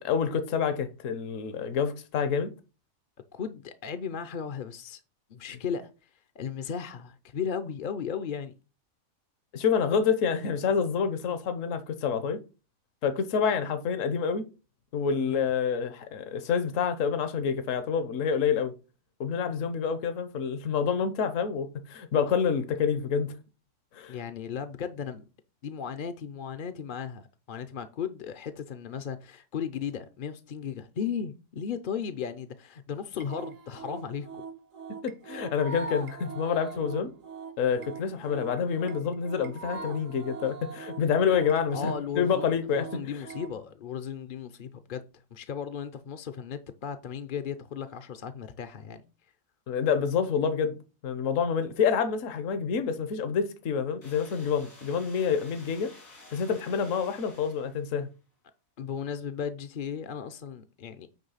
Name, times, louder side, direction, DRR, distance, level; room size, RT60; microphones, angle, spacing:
voice 1, 0.0-2.5 9.5-12.4 13.0-14.4 14.9-18.7 19.2-23.3 23.9-24.2 35.0-37.1 37.6-43.1 49.7-50.8 51.0-55.9 56.3-58.1, left 6 dB, 70° left, 1.2 m, -27 dB
voice 2, 3.3-5.0 5.3-5.9 6.4-8.5 15.3-15.4 24.1-25.2 25.6-34.4 41.7-45.0 45.3-49.0 58.8-61.1, left 7 dB, 50° left, 0.6 m, -36 dB
sound 1, 33.2-43.5, right 4 dB, 75° right, 1.4 m, -42 dB
sound 2, 54.0-58.0, left 2 dB, 85° left, 3.4 m, -52 dB
9.1 x 3.2 x 5.6 m
omnidirectional pair, 1.4 m